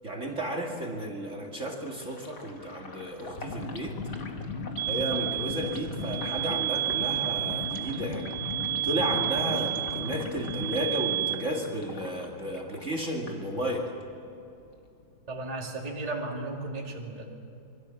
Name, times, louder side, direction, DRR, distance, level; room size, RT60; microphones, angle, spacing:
voice 1, 0.0-4.0 4.9-8.3 8.8-13.9, right 1 dB, 35° right, 2 dB, 2.6 m, -33 dB
Sink (filling or washing), 1.9-14.1 14.5-15.9, left 3 dB, 55° left, 2.7 m, -47 dB
sound 1, 3.2-10.9, left 3 dB, 35° left, 1.4 m, -37 dB
sound 2, 4.8-11.3, right 14 dB, 65° right, 1.7 m, -31 dB
voice 2, 15.3-17.2, right 2 dB, 20° right, -1 dB, 2.4 m, -35 dB
27.0 x 22.5 x 7.2 m, 2.6 s
omnidirectional pair, 2.3 m